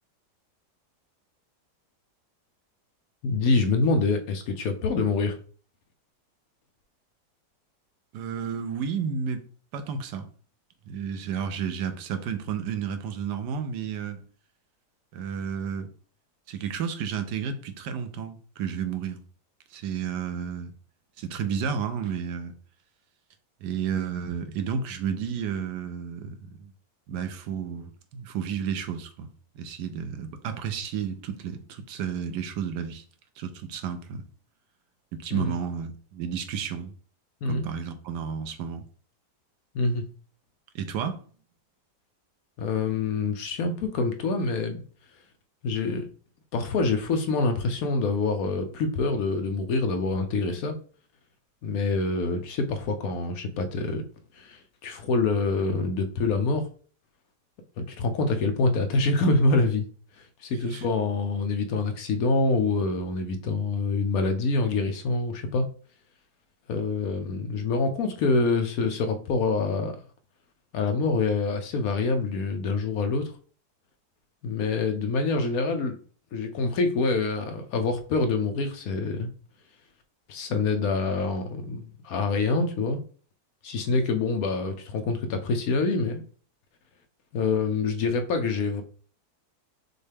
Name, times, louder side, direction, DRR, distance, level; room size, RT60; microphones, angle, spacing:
voice 1, 3.2-5.4 35.3-35.5 37.4-37.7 39.7-40.1 42.6-44.8 45.6-46.1 46.5-50.7 51.6-54.0 54.3-56.7 57.8-59.8 60.2-65.7 66.7-70.0 70.7-73.3 74.4-76.0 76.3-79.3 80.3-83.0 83.6-86.2 87.3-88.8, left 3 dB, 70° left, 1.0 m, -26 dB
voice 2, 8.1-9.4 9.7-10.3 10.9-14.2 15.1-15.9 16.5-19.2 19.7-20.7 21.2-22.5 23.6-26.7 27.1-29.3 29.5-33.0 33.4-34.2 35.1-36.9 37.4-38.8 40.7-41.2 60.7-60.8, right 7 dB, 85° right, 1.2 m, -32 dB
6.3 x 2.2 x 3.3 m
omnidirectional pair, 1.8 m